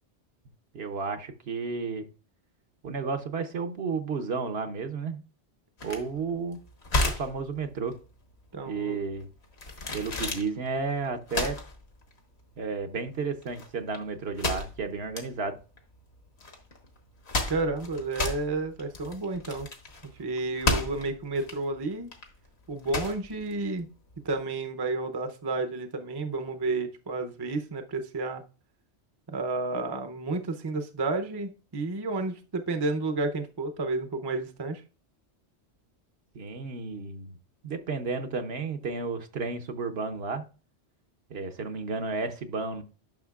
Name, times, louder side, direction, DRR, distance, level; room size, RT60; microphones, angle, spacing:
voice 1, 0.7-2.1 2.8-5.2 5.8-6.6 7.2-8.0 8.7-9.3 9.9-11.6 12.6-15.6 36.3-37.4 37.6-40.4 41.3-42.8, right 4 dB, 65° right, 7 dB, 1.1 m, -32 dB
sound 1, 5.8-24.3, left 2 dB, 70° left, 1.6 m, -33 dB
voice 2, 8.5-9.0 17.5-19.7 20.2-22.1 22.7-23.9 24.2-28.4 29.3-34.8, right 3 dB, 25° right, 6 dB, 0.6 m, -31 dB
10.5 x 6.0 x 2.4 m, 0.35 s
omnidirectional pair, 1.2 m